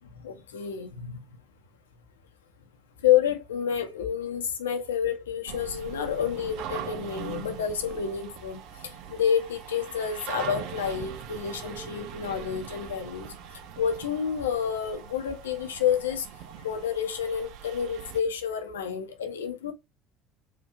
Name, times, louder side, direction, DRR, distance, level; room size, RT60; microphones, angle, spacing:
voice 1, 0.2-1.4 3.0-13.4 13.8-16.3 16.6-19.7, left 8 dB, 75° left, 0.9 m, -29 dB
sound 1, 5.5-18.2, right 9 dB, 55° right, 0.7 m, -41 dB
4.6 x 2.7 x 3.6 m
figure-of-eight pair, 60°, 0 cm